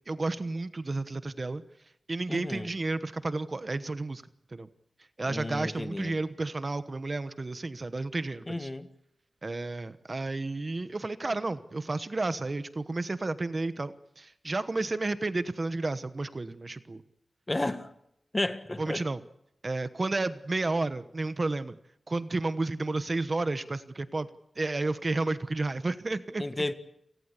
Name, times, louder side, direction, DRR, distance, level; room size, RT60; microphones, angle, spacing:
voice 1, 0.1-1.6 2.1-4.2 4.5-4.7 5.2-8.7 9.4-17.0 18.8-19.2 19.6-21.8 22.1-24.3 24.6-26.4, right 2 dB, 35° right, 1.1 m, -31 dB
voice 2, 2.3-2.7 5.3-6.2 8.5-8.9 17.5-17.9 18.3-19.0 26.4-26.7, left 2 dB, 20° left, 1.5 m, -32 dB
29.5 x 19.0 x 8.3 m
wide cardioid pair, 115°, 0 cm